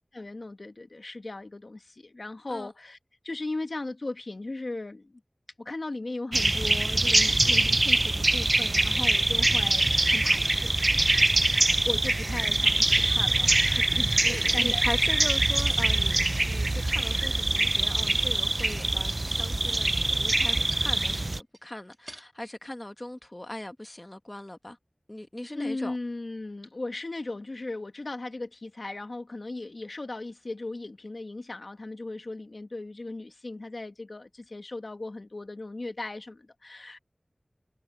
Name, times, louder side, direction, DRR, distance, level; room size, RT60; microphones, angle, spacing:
voice 1, 0.1-3.0 3.2-5.2 5.6-10.8 11.4-14.8 25.5-37.0, left 2 dB, 75° left, 1.7 m, -37 dB
sound 1, 6.3-21.4, right 2 dB, 50° right, 0.5 m, -24 dB
voice 2, 14.3-24.8 25.1-25.9, left 1 dB, 30° left, 1.5 m, -39 dB
sound 2, 14.3-15.0 15.4-17.3 18.0-18.1 18.5-20.6 21.2-22.2, right 1 dB, 30° right, 3.3 m, -48 dB
wide cardioid pair, 40°, 0 cm